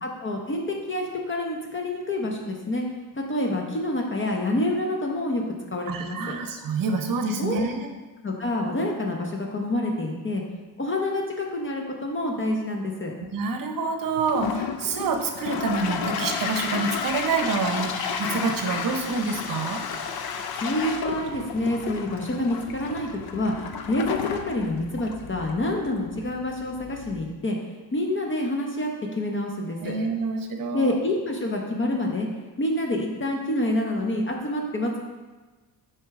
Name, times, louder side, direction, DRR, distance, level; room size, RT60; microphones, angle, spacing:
voice 1, 0.0-2.8 3.1-5.4 5.7-6.4 7.4-7.6 8.2-10.4 10.8-13.1 20.6-27.6 27.9-29.9 30.7-35.0, left 1 dB, 30° left, 1 dB, 0.8 m, -27 dB
voice 2, 5.9-7.9 13.3-19.8 29.8-31.0, right 4 dB, 50° right, 5 dB, 0.8 m, -27 dB
Toilet flush, 14.1-27.3, left 6 dB, 60° left, 0.6 m, -32 dB
6.3 x 4.6 x 3.6 m, 1.3 s
cardioid pair, 110°, 42 cm